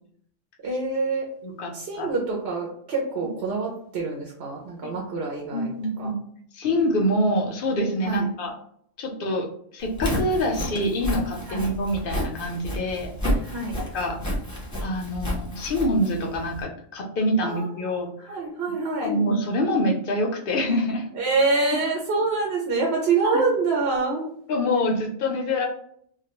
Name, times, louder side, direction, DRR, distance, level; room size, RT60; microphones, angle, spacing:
voice 1, 0.6-1.3 1.7-5.7 6.0-6.1 8.0-8.3 11.5-11.7 13.4-13.8 17.4-18.0 18.3-19.1 21.1-24.2, right 3 dB, 60° right, -2 dB, 0.8 m, -26 dB
voice 2, 1.4-2.1 4.8-4.9 5.5-6.2 6.5-8.5 9.0-13.1 13.9-14.2 14.8-18.4 19.0-21.1 23.2-23.4 24.5-25.7, left 1 dB, 60° left, 2 dB, 0.6 m, -25 dB
Walk footsteps, 9.8-16.6, equal, 20° left, 0.6 m, -30 dB
2.3 x 2.2 x 2.8 m, 0.64 s
omnidirectional pair, 1.3 m